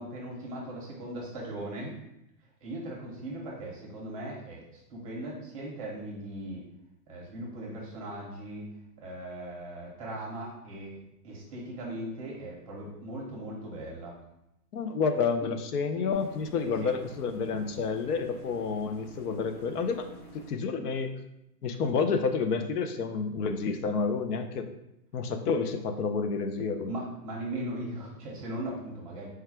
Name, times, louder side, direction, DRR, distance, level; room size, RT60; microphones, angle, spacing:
voice 1, 0.0-1.9 2.6-6.6 7.1-8.7 9.0-11.0 11.2-14.1 16.0-16.1 16.8-16.9 26.9-29.3, right 1 dB, 20° right, -4 dB, 0.6 m, -38 dB
voice 2, 14.7-20.1 20.3-21.1 21.6-24.7 25.1-26.9, left 5 dB, 70° left, 8 dB, 0.6 m, -29 dB
sound 1, 16.1-20.5, right 1 dB, 35° left, 0.9 m, -49 dB
4.7 x 2.3 x 4.5 m, 0.86 s
hypercardioid pair, 165°, 48 cm